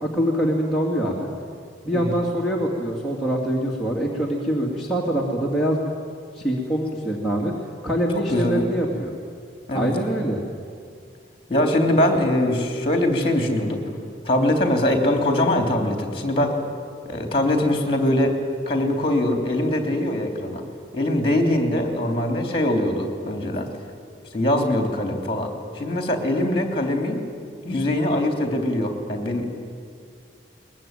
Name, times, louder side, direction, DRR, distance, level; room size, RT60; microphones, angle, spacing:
voice 1, 0.0-1.3 1.8-5.9 6.3-7.5 7.8-9.1 9.7-10.4, equal, ahead, -5 dB, 2.6 m, -24 dB
voice 2, 8.3-8.6 9.7-9.9 11.5-13.8 14.2-16.6 17.1-18.4 18.7-20.6 20.9-23.7 24.3-27.3 27.6-29.4, left 1 dB, 30° left, 4 dB, 3.3 m, -22 dB
22.0 x 21.0 x 9.2 m, 2.3 s
head